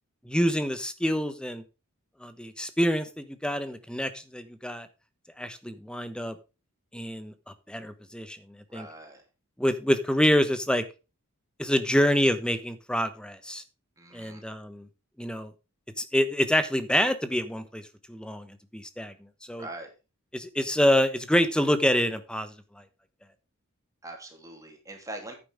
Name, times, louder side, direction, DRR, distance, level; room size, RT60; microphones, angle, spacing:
voice 1, 0.2-1.6 2.2-4.9 5.4-6.3 6.9-7.3 7.7-8.4 8.7-8.9 9.6-10.8 11.6-13.6 14.1-14.9 15.2-15.5 16.0-17.8 18.1-19.1 19.5-19.7 20.3-22.5, equal, 5° left, 11 dB, 1.2 m, -26 dB
voice 2, 8.7-9.2 14.0-14.4 19.6-19.9 24.0-25.4, right 2 dB, 15° right, 2 dB, 3.1 m, -42 dB
11.0 x 9.4 x 3.6 m, 0.30 s
head